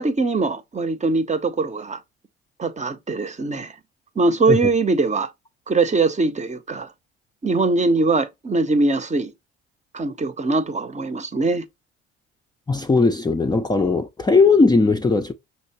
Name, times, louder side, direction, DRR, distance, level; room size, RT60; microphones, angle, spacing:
voice 1, 0.0-2.0 2.6-3.7 4.2-5.3 5.7-6.9 7.4-9.3 9.9-11.6, right 3 dB, 20° right, 0.7 m, -22 dB
voice 2, 12.7-15.3, left 4 dB, 15° left, 0.5 m, -18 dB
5.7 x 2.9 x 2.9 m
hypercardioid pair, 55°, 32 cm